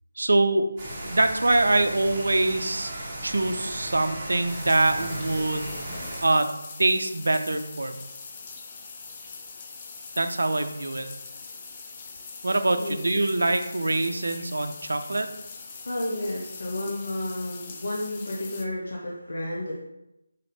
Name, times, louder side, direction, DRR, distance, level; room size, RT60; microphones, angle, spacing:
voice 1, 0.2-0.7 1.0-2.9 3.2-5.7 6.2-6.5 6.8-8.0 10.2-11.1 12.4-15.3, right 2 dB, 70° right, 8 dB, 0.5 m, -24 dB
sound 1, 0.8-6.2, right 1 dB, 15° right, 1.2 m, -36 dB
sound 2, 4.5-18.7, left 4 dB, 25° left, 0.5 m, -42 dB
voice 2, 15.7-19.8, left 1 dB, 70° left, -4 dB, 0.9 m, -32 dB
4.1 x 3.3 x 4.0 m, 0.89 s
figure-of-eight pair, 165°, 0 cm